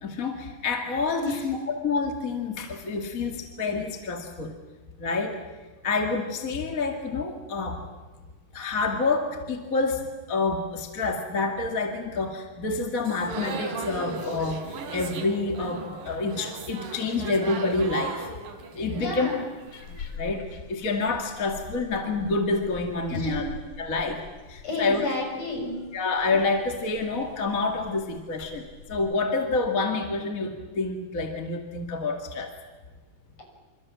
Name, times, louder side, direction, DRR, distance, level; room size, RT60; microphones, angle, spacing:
voice 1, 0.0-4.6 5.0-5.4 5.8-7.8 8.5-18.3 18.7-19.3 20.1-23.4 23.8-24.2 24.5-25.0 25.9-32.5, left 3 dB, 30° left, 3 dB, 2.1 m, -28 dB
sound 1, 13.0-20.0, right 3 dB, 90° right, 4.1 m, -37 dB
voice 2, 18.9-19.5 23.1-23.5 24.6-25.7, left 2 dB, 50° left, 1 dB, 8.0 m, -31 dB
sound 2, 19.7-28.9, left 6 dB, 80° left, 4.8 m, -45 dB
28.0 x 26.5 x 7.5 m, 1.3 s
omnidirectional pair, 3.9 m